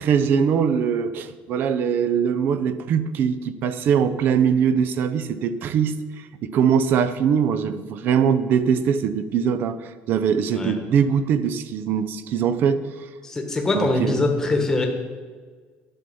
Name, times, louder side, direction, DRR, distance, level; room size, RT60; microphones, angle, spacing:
voice 1, 0.0-12.8 13.7-14.3, right 7 dB, 45° right, 13 dB, 0.5 m, -22 dB
voice 2, 13.2-14.9, left 2 dB, 10° left, 3 dB, 1.2 m, -23 dB
11.0 x 6.9 x 5.5 m, 1.5 s
cardioid pair, 175°, 5 cm